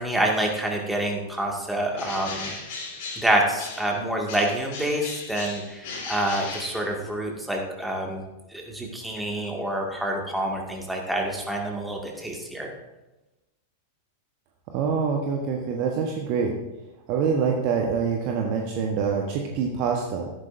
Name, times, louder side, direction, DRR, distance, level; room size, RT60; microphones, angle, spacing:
voice 1, 0.0-2.6 3.2-8.2 8.5-12.7, right 1 dB, 5° right, 0 dB, 2.1 m, -27 dB
Bird, 1.9-4.0 4.3-7.3, left 4 dB, 50° left, 3.3 m, -37 dB
voice 2, 14.7-16.6 17.1-20.3, right 6 dB, 40° right, 1 dB, 1.2 m, -25 dB
13.5 x 11.5 x 2.7 m, 1.0 s
figure-of-eight pair, 95°, 0 cm